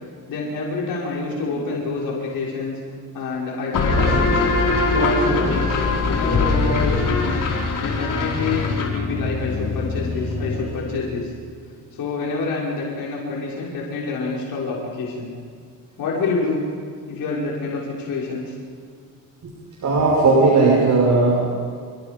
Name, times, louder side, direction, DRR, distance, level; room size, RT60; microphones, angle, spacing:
voice 1, 0.3-2.8 3.1-4.5 4.9-5.8 6.1-7.4 7.8-11.3 11.9-15.3 16.0-16.6 17.1-18.5, left 3 dB, 80° left, -4 dB, 5.9 m, -27 dB
sound 1, 3.7-11.1, left 3 dB, 65° left, 5.2 m, -22 dB
voice 2, 19.8-21.4, right 3 dB, 55° right, -2 dB, 5.7 m, -17 dB
29.5 x 23.5 x 5.3 m, 2.1 s
cardioid pair, 100°, 34 cm